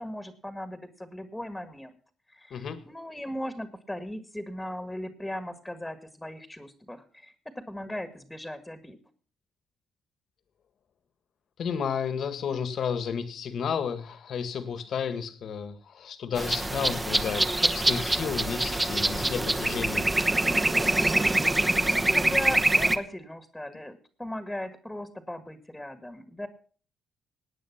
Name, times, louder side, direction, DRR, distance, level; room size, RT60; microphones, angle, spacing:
voice 1, 0.0-1.9 2.3-7.3 7.7-9.0 21.8-26.5, left 1 dB, 5° left, 11 dB, 1.7 m, -38 dB
voice 2, 2.5-2.8 11.6-20.1, left 7 dB, 60° left, 12 dB, 1.8 m, -32 dB
sound 1, 16.4-23.0, right 2 dB, 15° right, 1.1 m, -25 dB
18.0 x 9.4 x 5.9 m, 0.43 s
cardioid pair, 90°, 0 cm